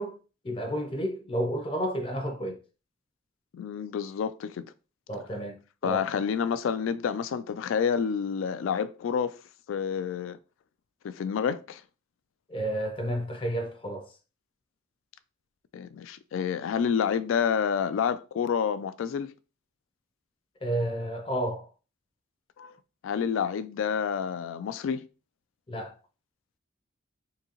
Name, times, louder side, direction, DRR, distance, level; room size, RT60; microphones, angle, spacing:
voice 1, 0.0-2.6 5.1-5.6 5.8-6.0 12.5-14.1 20.6-21.7 25.7-25.9, right 1 dB, 25° left, 0.5 m, -31 dB
voice 2, 3.5-4.7 5.8-9.4 9.7-10.4 11.0-11.8 15.7-19.3 22.6-22.8 23.0-25.1, left 7 dB, 85° left, 0.3 m, -29 dB
3.8 x 2.7 x 2.9 m
head